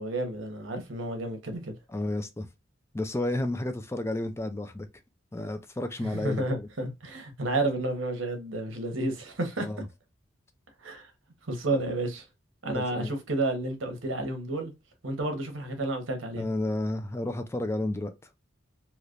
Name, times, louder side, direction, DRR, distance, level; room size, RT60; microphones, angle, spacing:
voice 1, 0.0-1.7 6.0-9.7 10.8-11.1 11.5-12.2 12.6-14.7 15.0-16.5, right 2 dB, 85° right, 1.0 m, -31 dB
voice 2, 1.9-2.5 2.9-4.9 5.3-6.7 9.6-9.8 12.7-13.1 16.4-18.1, left 1 dB, 15° left, 0.4 m, -31 dB
3.2 x 2.8 x 2.5 m
head